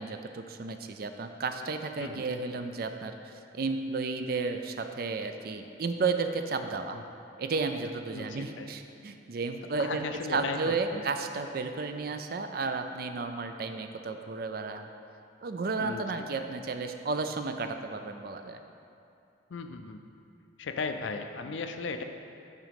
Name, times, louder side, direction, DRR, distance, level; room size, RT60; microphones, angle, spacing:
voice 1, 0.0-7.0 7.4-10.0 10.3-14.9 15.4-18.6, right 4 dB, 50° right, 7 dB, 0.4 m, -33 dB
voice 2, 8.1-8.7 9.8-11.0 15.8-16.5 19.5-20.0 20.6-22.0, left 4 dB, 85° left, 7 dB, 0.5 m, -36 dB
9.0 x 3.8 x 5.2 m, 2.6 s
head